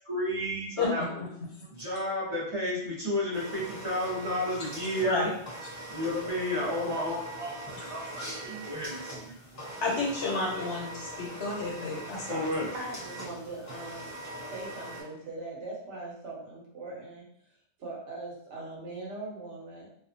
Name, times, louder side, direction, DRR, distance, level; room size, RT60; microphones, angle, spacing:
voice 1, 0.1-1.2 1.7-5.3 5.9-9.4 12.3-12.7, left 1 dB, 35° right, -6 dB, 0.7 m, -32 dB
voice 2, 0.8-1.3 5.0-5.3 9.8-12.5, left 3 dB, 75° left, -3 dB, 1.0 m, -31 dB
sound 1, 3.3-15.0, right 1 dB, 20° left, 0.5 m, -42 dB
voice 3, 12.7-14.1 14.5-17.2 17.8-19.9, right 2 dB, 85° right, -3 dB, 1.2 m, -40 dB
2.5 x 2.3 x 2.5 m, 0.69 s
omnidirectional pair, 1.2 m